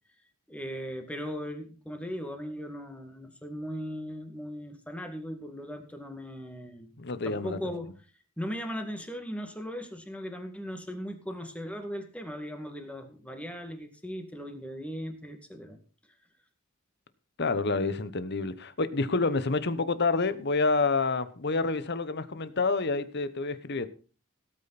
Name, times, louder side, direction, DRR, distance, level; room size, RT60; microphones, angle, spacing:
voice 1, 0.5-6.9 7.2-7.9 8.4-15.8, equal, 5° left, 2.1 m, -38 dB
voice 2, 7.0-7.6 17.4-23.9, left 3 dB, 55° left, 1.1 m, -28 dB
17.5 x 8.8 x 4.2 m
head